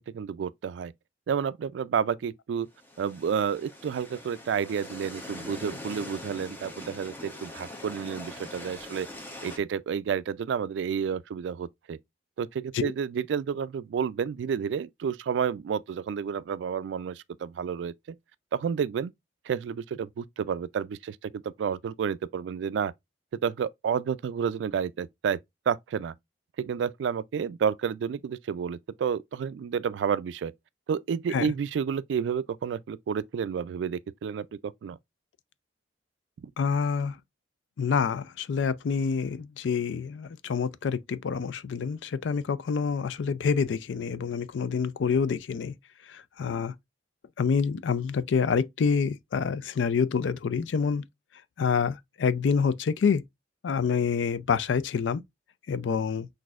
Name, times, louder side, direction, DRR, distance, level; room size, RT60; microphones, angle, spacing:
voice 1, 0.1-0.9 1.3-2.7 3.0-9.1 9.4-12.0 12.4-18.2 18.5-19.1 19.5-22.9 23.4-25.4 25.7-26.1 26.6-30.5 30.9-35.0 36.4-36.5, right 7 dB, 75° right, 0.3 m, -30 dB
sound 1, 2.7-9.6, left 1 dB, 10° left, 0.8 m, -42 dB
voice 2, 36.6-37.2 37.8-45.7 46.1-46.7 47.4-51.0 51.6-53.2 53.6-55.2 55.7-56.3, left 6 dB, 90° left, 0.4 m, -27 dB
6.0 x 2.6 x 2.3 m
head